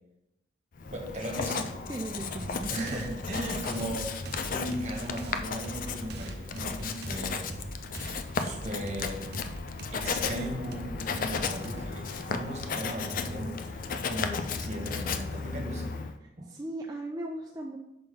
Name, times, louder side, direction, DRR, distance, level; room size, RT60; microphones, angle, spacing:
Writing, 0.8-16.2, left 5 dB, 50° left, 0.4 m, -35 dB
voice 1, 0.9-1.7 2.7-4.1 4.5-7.5 8.3-9.3 9.9-15.9 16.4-16.5, equal, 40° right, 1 dB, 1.3 m, -37 dB
voice 2, 1.9-3.6 16.5-17.8, right 2 dB, 20° right, 0 dB, 0.4 m, -37 dB
sound 1, 2.4-13.5, right 1 dB, 60° right, 0.6 m, -43 dB
5.7 x 3.7 x 5.2 m, 0.91 s
head